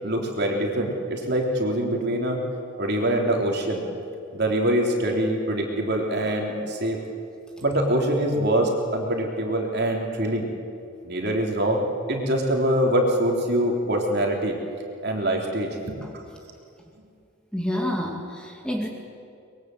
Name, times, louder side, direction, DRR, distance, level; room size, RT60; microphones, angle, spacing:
voice 1, 0.0-2.4 2.8-3.8 4.3-7.0 7.6-10.5 11.0-11.8 12.1-14.6 15.0-16.0, right 1 dB, 50° right, 1 dB, 3.5 m, -24 dB
voice 2, 17.5-18.9, left 1 dB, 5° left, 0 dB, 2.2 m, -28 dB
24.0 x 22.0 x 7.9 m, 2.4 s
head